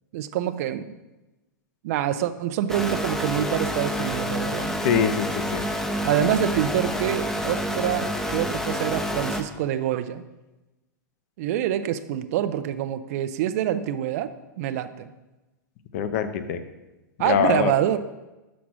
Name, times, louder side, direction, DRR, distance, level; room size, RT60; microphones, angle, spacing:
voice 1, 0.1-0.9 1.8-4.8 6.0-10.2 11.4-15.1 17.2-18.0, right 11 dB, 50° right, 11 dB, 0.5 m, -26 dB
sound 1, 2.7-9.4, equal, 5° left, 0.6 m, -28 dB
voice 2, 4.8-5.6 15.9-16.6 17.2-17.7, left 7 dB, 50° left, 9 dB, 0.7 m, -23 dB
6.1 x 5.9 x 6.1 m, 1.1 s
figure-of-eight pair, 100°, 10 cm